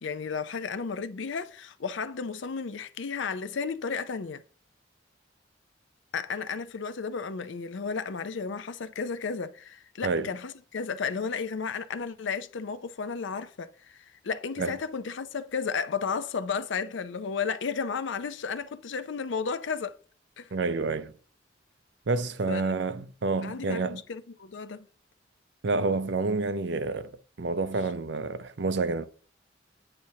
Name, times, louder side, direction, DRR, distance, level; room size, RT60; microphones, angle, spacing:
voice 1, 0.0-4.4 6.1-20.0 20.4-20.5 22.5-22.8 23.4-24.9, left 5 dB, 80° left, 0.5 m, -33 dB
voice 2, 20.5-21.1 22.1-24.0 25.6-29.1, right 3 dB, 70° right, 0.6 m, -29 dB
8.9 x 5.9 x 2.8 m
head